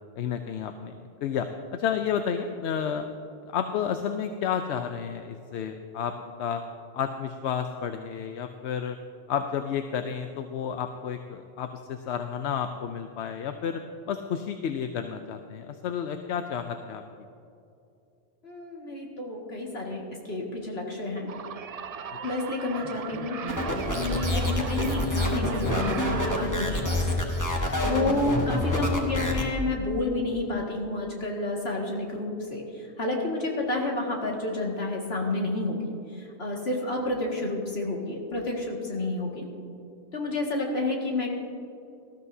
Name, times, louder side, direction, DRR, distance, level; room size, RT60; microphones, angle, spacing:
voice 1, 0.2-0.9 1.2-1.5 1.7-3.0 3.5-6.1 6.4-6.6 6.9-9.0 9.3-13.8 14.1-17.0, left 8 dB, 80° left, 7 dB, 0.9 m, -31 dB
voice 2, 18.4-20.0 20.3-21.3 22.2-23.4 23.9-27.2 27.8-35.8 36.1-39.5 40.1-41.3, left 2 dB, 65° left, -1 dB, 2.3 m, -30 dB
sound 1, 21.3-26.4, right 6 dB, 55° right, 0.4 m, -37 dB
sound 2, 23.5-29.5, left 1 dB, 15° left, 1.5 m, -27 dB
19.0 x 13.5 x 2.7 m, 2.6 s
omnidirectional pair, 1.1 m